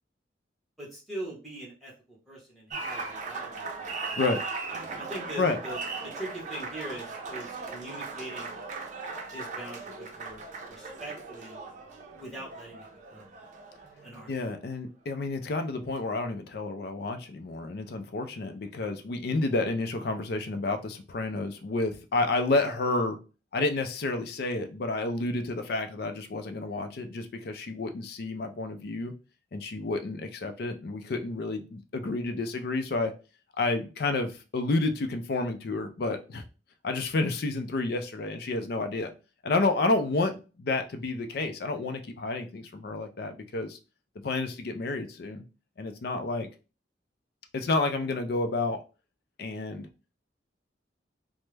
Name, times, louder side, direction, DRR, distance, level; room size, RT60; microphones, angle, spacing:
voice 1, 0.8-3.9 5.0-8.6 9.3-11.6 12.2-13.4 14.0-14.3, right 1 dB, ahead, -4 dB, 1.0 m, -42 dB
Applause, 2.7-14.5, right 4 dB, 45° right, 0.5 m, -38 dB
voice 2, 14.3-23.2 23.5-29.1 29.5-33.1 33.6-36.4 36.8-39.1 39.4-43.8 44.2-45.4 45.8-46.5 47.5-48.8 49.4-49.9, left 3 dB, 60° left, 7 dB, 0.4 m, -30 dB
3.2 x 2.0 x 3.2 m, 0.33 s
head